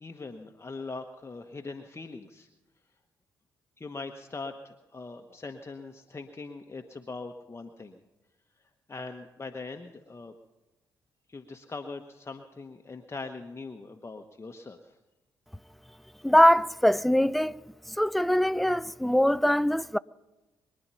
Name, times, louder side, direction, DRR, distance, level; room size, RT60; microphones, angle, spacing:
voice 1, 0.0-2.5 3.8-8.0 8.9-10.3 11.3-15.0, left 3 dB, 25° left, 1.1 m, -41 dB
voice 2, 16.2-17.6 18.0-20.0, equal, ahead, 0.5 m, -22 dB
23.5 x 10.0 x 5.7 m
figure-of-eight pair, 40°, 10 cm